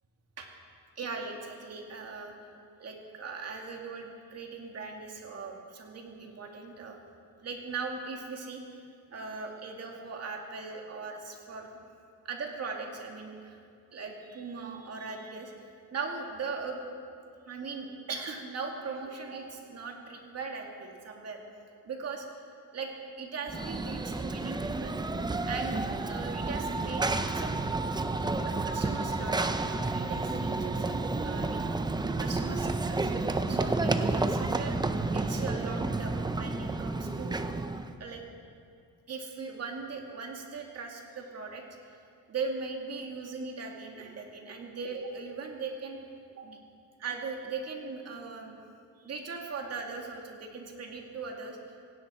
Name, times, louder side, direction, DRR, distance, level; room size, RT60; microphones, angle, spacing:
voice 1, 1.0-2.3 2.8-7.0 7.4-8.8 9.1-11.7 12.2-13.6 13.9-16.8 17.5-21.4 21.8-22.2 22.7-22.9 23.2-25.0 25.4-27.6 28.4-33.1 33.5-34.8 35.1-37.4 38.0-38.2 39.1-41.6 42.3-46.0 46.4-46.6 47.0-48.6 49.0-51.6, right 4 dB, 45° right, 1 dB, 2.2 m, -39 dB
Run / Train, 23.5-37.9, right 3 dB, 10° right, 0.5 m, -31 dB
17.0 x 16.5 x 4.3 m, 2.3 s
cardioid pair, 145°, 34 cm